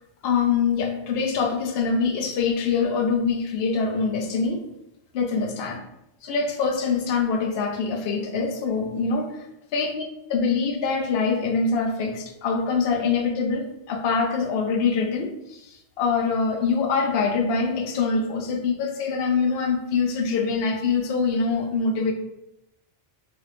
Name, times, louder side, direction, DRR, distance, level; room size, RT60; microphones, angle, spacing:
voice 1, 0.2-4.6 5.1-5.8 6.2-9.4 9.7-10.0 10.3-15.3 16.0-22.1, left 5 dB, 70° left, 2 dB, 0.8 m, -24 dB
3.1 x 2.4 x 3.3 m, 0.85 s
omnidirectional pair, 1.1 m